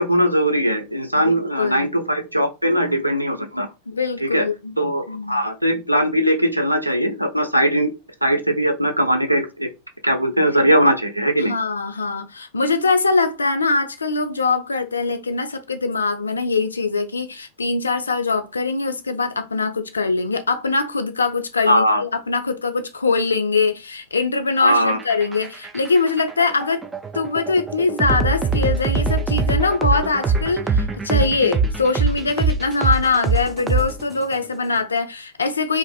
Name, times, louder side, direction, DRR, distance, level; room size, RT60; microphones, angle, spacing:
voice 1, 0.0-3.7 4.2-4.5 4.8-7.9 8.2-9.7 10.0-11.5 21.7-22.0 24.6-25.0, equal, 85° right, 0.4 m, -19 dB
voice 2, 1.2-1.9 3.9-4.7 5.1-5.4 11.4-26.9 27.1-35.8, left 4 dB, 75° left, 0.4 m, -22 dB
sound 1, 24.6-34.3, right 4 dB, 15° right, 0.3 m, -23 dB
2.4 x 2.4 x 2.2 m
figure-of-eight pair, 90°, 0 cm